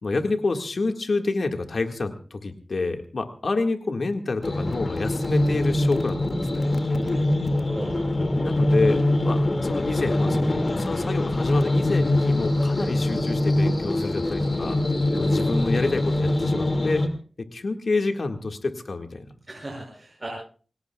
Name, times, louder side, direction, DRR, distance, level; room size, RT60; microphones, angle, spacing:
voice 1, 0.0-6.7 8.4-14.8 15.2-17.0 17.4-19.3, left 3 dB, 65° left, 5 dB, 1.8 m, -28 dB
sound 1, 4.4-17.1, left 1 dB, 45° left, 2.2 m, -23 dB
voice 2, 6.9-7.9 19.5-20.3, right 1 dB, 30° right, -2 dB, 6.1 m, -38 dB
27.0 x 18.0 x 2.3 m, 0.40 s
wide cardioid pair, 65°, 0 cm